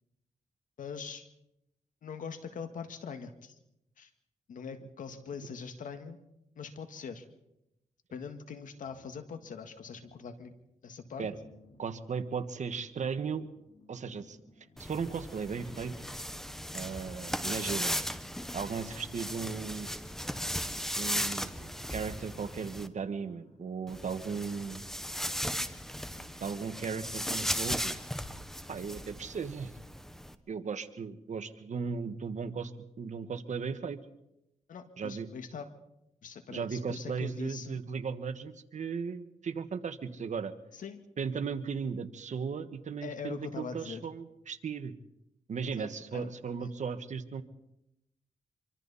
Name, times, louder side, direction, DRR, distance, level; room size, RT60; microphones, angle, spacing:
voice 1, 0.8-1.3 2.0-3.6 4.0-4.1 4.5-6.2 6.6-7.3 8.1-10.6 10.8-11.3 34.7-35.7 36.2-37.8 40.7-41.0 43.0-44.1 45.7-46.3 46.6-46.7, left 6 dB, 85° left, 8 dB, 1.8 m, -42 dB
sound 1, 8.8-10.6 11.0-16.7 17.6-17.7 18.0-26.9, left 2 dB, 55° left, 5.2 m, -61 dB
voice 2, 11.8-13.5 13.9-14.4 14.8-15.9 16.7-18.0 18.5-19.9 21.0-24.8 26.4-28.0 28.7-29.7 30.5-32.7 33.0-34.0 35.0-35.3 36.5-40.5 41.2-44.9 45.5-47.4, right 5 dB, 65° right, 9 dB, 1.5 m, -36 dB
sound 2, 14.8-22.9 23.9-30.4, equal, 5° left, 1.3 m, -37 dB
25.5 x 24.5 x 4.2 m, 0.86 s
cardioid pair, 80°, 13 cm